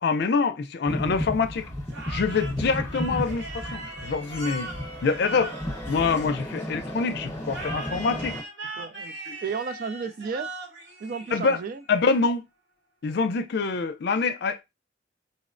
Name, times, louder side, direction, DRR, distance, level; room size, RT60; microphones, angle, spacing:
voice 1, 0.0-1.7 2.1-4.7 5.0-5.5 5.9-8.4 9.3-9.4 11.3-11.6 11.9-12.4 13.0-14.6, left 4 dB, 60° left, 0.4 m, -25 dB
sound 1, 0.9-8.4, equal, 10° left, 1.0 m, -34 dB
sound 2, 1.9-6.7 7.5-11.9, right 2 dB, 70° right, 1.0 m, -39 dB
voice 2, 8.8-10.5 11.0-11.8, right 5 dB, 50° right, 0.4 m, -33 dB
4.1 x 2.1 x 2.5 m
head